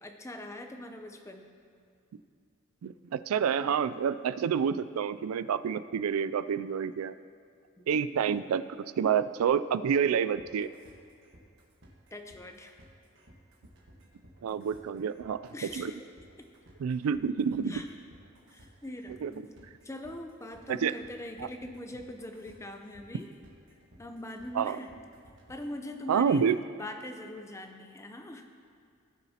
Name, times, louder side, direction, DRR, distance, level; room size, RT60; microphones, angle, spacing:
voice 1, 0.0-1.5 7.8-7.9 12.1-12.8 15.5-16.1 16.4-16.5 17.7-17.9 18.5-19.5 19.8-23.3 24.0-24.9 25.5-26.5 26.8-28.5, left 1 dB, 15° left, 5 dB, 0.6 m, -42 dB
voice 2, 2.8-7.1 7.9-8.6 9.0-10.7 14.4-15.4 15.7-15.9 16.8-17.8 19.2-19.3 20.7-20.9 24.5-24.8 26.1-26.6, right 7 dB, 90° right, 14 dB, 0.3 m, -28 dB
sound 1, 10.4-25.8, right 1 dB, 60° right, 1.4 m, -57 dB
16.5 x 6.9 x 2.9 m, 2.4 s
head